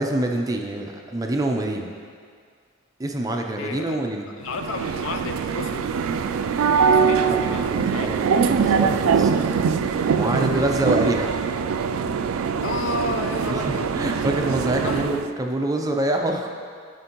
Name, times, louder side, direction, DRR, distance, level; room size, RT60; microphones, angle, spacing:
voice 1, 0.0-1.9 3.0-4.3 7.3-9.3 10.2-11.3 13.5-13.6 13.9-16.5, right 1 dB, 15° right, 2 dB, 0.5 m, -26 dB
voice 2, 3.6-5.9 6.8-8.1 11.0-11.2 12.6-14.0 14.8-15.1, left 4 dB, 70° left, 6 dB, 0.5 m, -32 dB
sound 1, 4.5-15.3, right 6 dB, 90° right, 0.3 m, -22 dB
11.0 x 5.2 x 2.9 m, 2.1 s
head